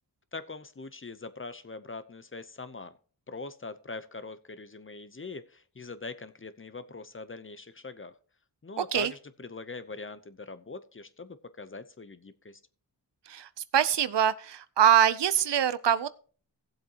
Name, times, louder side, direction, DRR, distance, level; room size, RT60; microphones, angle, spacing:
voice 1, 0.3-2.9 3.3-8.1 8.6-12.6, left 3 dB, 30° left, 13 dB, 0.8 m, -42 dB
voice 2, 8.8-9.1 13.3-16.1, right 9 dB, 70° right, 16 dB, 0.7 m, -24 dB
17.0 x 7.8 x 2.9 m, 0.40 s
wide cardioid pair, 85°, 43 cm